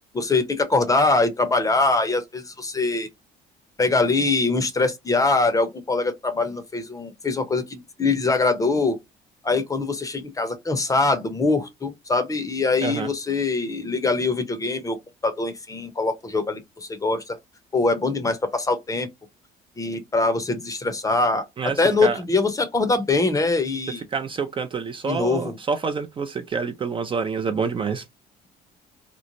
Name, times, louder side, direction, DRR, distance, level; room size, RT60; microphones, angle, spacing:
voice 1, 0.1-3.1 3.8-9.0 9.4-15.0 15.2-17.4 17.7-19.1 19.8-24.1 25.0-25.6, left 3 dB, 20° left, 0.7 m, -23 dB
voice 2, 21.6-22.2 24.1-28.0, right 5 dB, 30° right, 0.5 m, -27 dB
3.0 x 2.1 x 2.5 m
cardioid pair, 110°, 17 cm